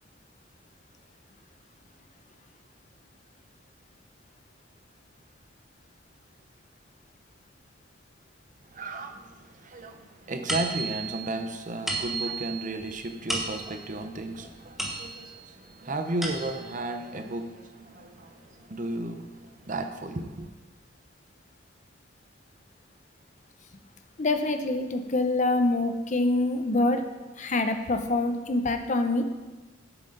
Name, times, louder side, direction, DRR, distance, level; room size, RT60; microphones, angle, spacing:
voice 1, 8.7-20.5, right 2 dB, 40° right, 6 dB, 0.7 m, -34 dB
sound 1, 10.5-15.5 15.9-16.8, right 2 dB, ahead, 1.1 m, -34 dB
voice 2, 24.2-27.0 27.4-29.2, left 2 dB, 40° left, 7 dB, 0.6 m, -25 dB
10.5 x 7.6 x 3.9 m, 1.2 s
head